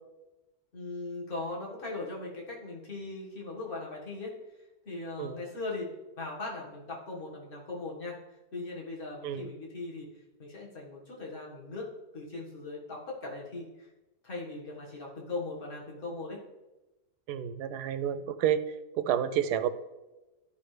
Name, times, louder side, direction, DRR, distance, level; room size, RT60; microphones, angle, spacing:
voice 1, 0.7-4.3 4.9-8.2 8.5-10.1 10.4-13.9 14.2-16.4, left 3 dB, 35° left, -3 dB, 1.8 m, -39 dB
voice 2, 17.3-18.6 19.0-19.7, right 10 dB, 85° right, 11 dB, 1.1 m, -29 dB
13.0 x 5.4 x 3.3 m, 1.1 s
omnidirectional pair, 1.7 m